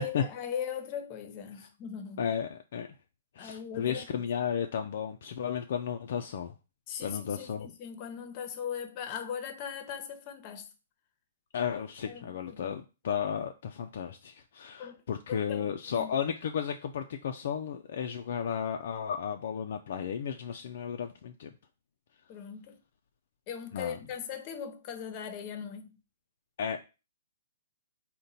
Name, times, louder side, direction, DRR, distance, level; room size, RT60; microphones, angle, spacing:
voice 1, 0.0-2.2 3.4-4.2 6.9-10.6 12.0-12.8 14.8-15.0 15.3-15.6 15.9-16.1 22.3-22.8 23.5-26.0, left 8 dB, 35° left, 0.7 m, -39 dB
voice 2, 2.2-2.9 3.4-6.5 7.0-7.7 11.5-21.5 23.7-24.0 26.6-26.8, left 7 dB, 60° left, 0.3 m, -33 dB
3.7 x 2.2 x 4.0 m
hypercardioid pair, 130°, 0 cm